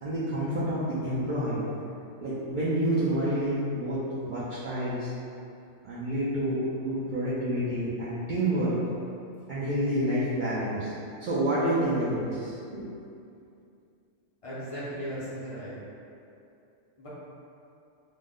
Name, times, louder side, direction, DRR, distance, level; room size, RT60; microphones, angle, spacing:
voice 1, 0.0-1.6 2.2-5.1 5.8-8.7 9.5-10.9 11.2-12.9, right 1 dB, 60° right, -11 dB, 0.5 m, -28 dB
voice 2, 14.4-15.8 17.0-17.1, equal, 45° left, -9 dB, 0.4 m, -36 dB
2.5 x 2.0 x 3.6 m, 2.6 s
omnidirectional pair, 1.3 m